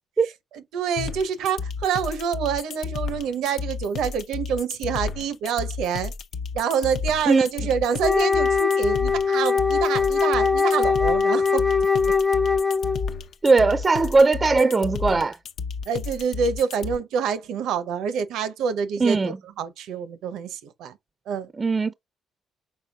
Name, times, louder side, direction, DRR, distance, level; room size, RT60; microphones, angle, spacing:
voice 1, 0.5-6.1 6.5-11.9 15.9-21.0 21.3-21.5, right 7 dB, 85° right, 0.7 m, -27 dB
sound 1, 1.0-17.0, left 5 dB, 70° left, 0.5 m, -32 dB
Wind instrument woodwind instrument, 8.0-13.2, left 5 dB, 15° left, 0.6 m, -21 dB
voice 2, 13.4-15.4 19.0-19.4 21.6-21.9, right 3 dB, 30° right, 0.4 m, -19 dB
5.5 x 3.9 x 2.3 m
cardioid pair, 90°, 0 cm